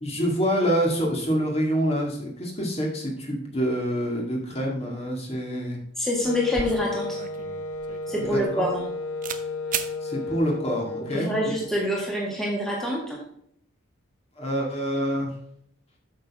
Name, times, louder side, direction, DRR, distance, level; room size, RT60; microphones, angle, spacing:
voice 1, 0.0-5.8 8.2-8.4 10.0-11.3 14.4-15.3, equal, 30° left, -1 dB, 2.0 m, -26 dB
sound 1, 5.8-6.0 6.2-8.9 9.2-9.4 9.7-9.9, right 7 dB, 35° right, 0.6 m, -34 dB
voice 2, 6.0-7.2 8.1-8.9 11.1-13.2, equal, ahead, -4 dB, 1.7 m, -26 dB
Wind instrument woodwind instrument, 6.2-11.9, left 3 dB, 80° left, 0.7 m, -33 dB
8.6 x 6.7 x 3.6 m, 0.69 s
head